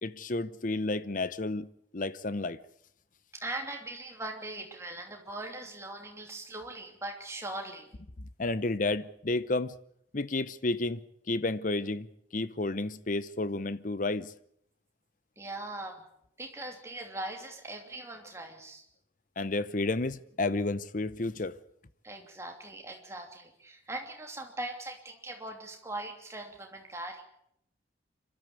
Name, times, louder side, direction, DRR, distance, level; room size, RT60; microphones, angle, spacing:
voice 1, 0.0-1.7 1.9-2.6 8.2-9.7 10.1-11.0 11.3-12.1 12.3-14.3 19.4-21.6, left 2 dB, 40° left, 0.8 m, -31 dB
voice 2, 3.3-7.9 15.4-16.0 16.4-18.8 22.0-27.2, right 2 dB, 15° right, 2.9 m, -40 dB
26.0 x 13.0 x 8.4 m
head